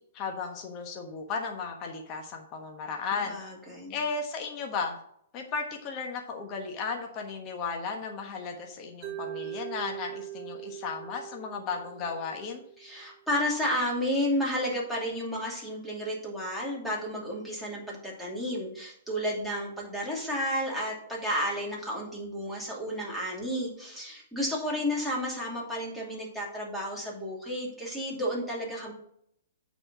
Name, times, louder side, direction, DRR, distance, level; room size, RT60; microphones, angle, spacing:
voice 1, 0.1-3.4 3.9-5.0 5.3-12.6, left 5 dB, 35° left, 2 dB, 1.3 m, -35 dB
voice 2, 3.1-4.0 12.8-28.9, equal, ahead, -4 dB, 2.6 m, -32 dB
Mallet percussion, 9.0-13.1, right 13 dB, 30° right, 1.3 m, -41 dB
8.7 x 4.4 x 6.1 m, 0.70 s
hypercardioid pair, 140°, 0 cm